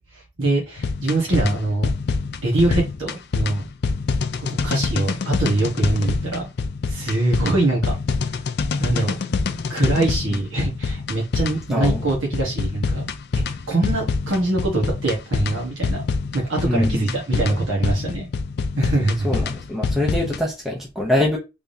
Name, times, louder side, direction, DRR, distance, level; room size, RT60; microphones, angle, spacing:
voice 1, 0.1-1.9 2.4-3.7 4.4-6.5 6.9-7.9 8.8-9.1 9.7-13.0 13.4-16.0 16.3-18.3 18.8-19.3, right 2 dB, 75° right, 1.3 m, -23 dB
sound 1, 0.8-20.4, left 4 dB, 55° left, 0.4 m, -25 dB
voice 2, 11.7-12.1 16.6-17.2 19.2-21.4, left 1 dB, ahead, 0.7 m, -24 dB
3.5 x 3.3 x 2.7 m
head